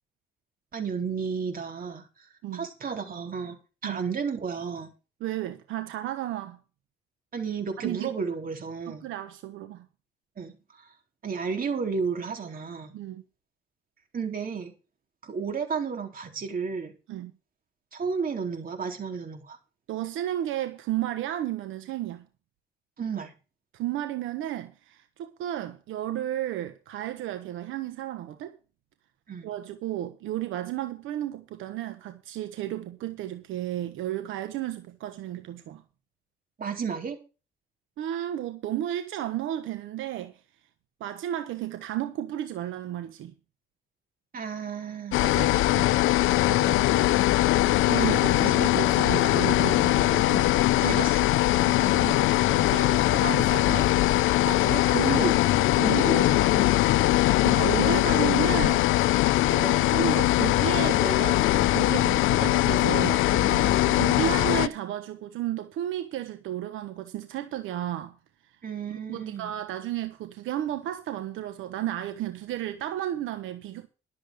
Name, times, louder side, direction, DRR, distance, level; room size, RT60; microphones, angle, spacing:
voice 1, 0.7-3.5 3.8-4.9 7.3-9.0 10.4-10.9 11.2-12.9 14.1-14.7 15.2-16.9 17.9-19.6 23.0-23.3 29.3-29.5 36.6-37.2 44.3-45.2 46.4-47.1 48.5-48.9 50.8-51.3 54.5-55.4 55.8-56.8 63.3-64.4 68.6-69.5, right 5 dB, 45° right, 4.0 m, -33 dB
voice 2, 5.2-6.6 7.8-8.1 8.9-9.9 12.9-13.2 17.1-17.3 19.9-22.3 23.7-28.5 29.4-35.8 38.0-40.3 41.0-43.3 45.2-45.9 47.9-50.5 51.7-53.9 57.4-63.2 64.0-68.1 68.9-73.9, right 12 dB, 90° right, 1.2 m, -33 dB
sound 1, 45.1-64.7, left 16 dB, 90° left, 0.6 m, -22 dB
12.0 x 7.5 x 6.5 m
cardioid pair, 90°, 20 cm